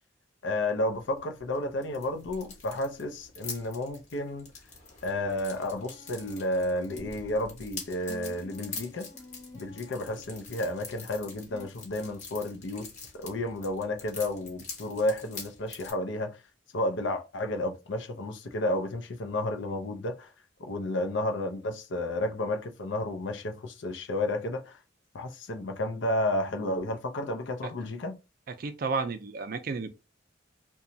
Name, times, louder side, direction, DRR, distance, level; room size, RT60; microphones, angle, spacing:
voice 1, 0.4-4.5 5.0-9.1 9.5-16.4 16.7-20.3 20.6-24.8 25.1-28.2, left 1 dB, 70° left, 0.5 m, -32 dB
sound 1, 0.9-15.9, left 4 dB, 40° left, 0.9 m, -46 dB
sound 2, 5.2-7.6 8.1-10.6 11.5-11.7, left 2 dB, 15° left, 0.8 m, -50 dB
voice 2, 28.5-29.9, right 4 dB, 50° right, 0.4 m, -32 dB
2.9 x 2.2 x 2.6 m
head